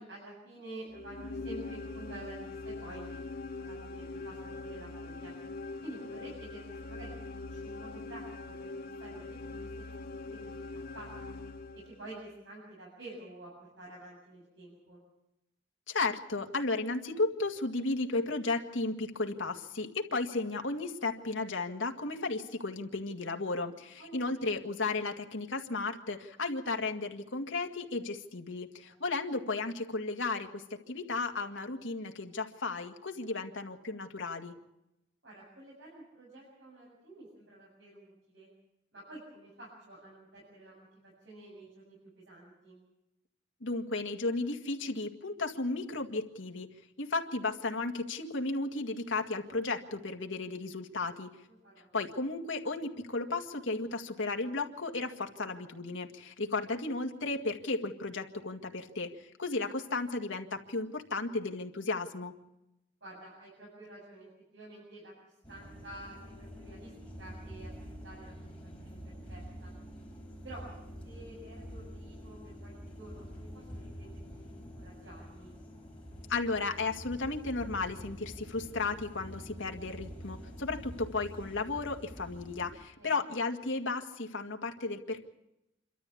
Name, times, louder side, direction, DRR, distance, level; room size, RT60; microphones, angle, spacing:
voice 1, 0.0-3.2 3.5-5.4 5.8-8.7 9.0-11.3 11.8-15.0 24.0-24.3 28.8-29.0 35.2-38.5 38.9-42.8 51.6-51.9 63.0-66.9 67.2-67.7 68.0-68.4 68.8-69.8 70.4-70.7 71.0-74.5 74.7-75.6 83.0-83.2, right 2 dB, 70° right, -5 dB, 7.7 m, -50 dB
sound 1, 0.9-12.2, left 3 dB, 50° left, 1.7 m, -42 dB
voice 2, 15.9-34.5 43.6-46.7 47.0-51.3 51.9-59.1 59.4-62.3 76.3-85.2, left 3 dB, 85° left, 4 dB, 2.0 m, -34 dB
sound 2, 65.4-82.7, equal, 5° left, 5.3 m, -47 dB
27.0 x 13.0 x 8.5 m, 0.89 s
head